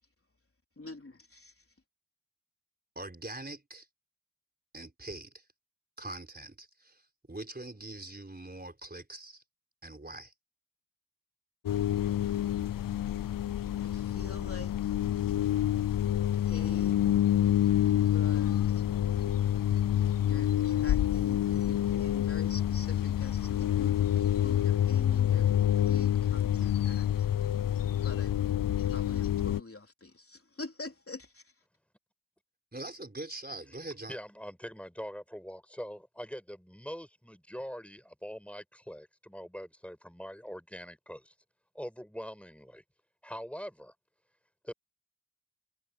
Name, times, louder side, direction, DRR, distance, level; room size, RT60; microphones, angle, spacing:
voice 1, 0.8-1.6 13.8-15.3 16.3-17.2 17.9-18.9 20.2-25.5 25.8-27.3 27.9-28.4 28.9-31.5, left 2 dB, 40° left, 3.8 m, -46 dB
voice 2, 2.9-3.9 4.7-5.5 6.0-9.4 9.8-10.3 32.7-34.2, right 2 dB, 25° right, 4.6 m, -43 dB
sound 1, 11.6-29.6, left 11 dB, 70° left, 0.5 m, -27 dB
voice 3, 34.1-41.3 41.7-42.8 43.2-43.9 44.6-44.7, equal, 5° left, 5.6 m, -43 dB
wide cardioid pair, 50°, 34 cm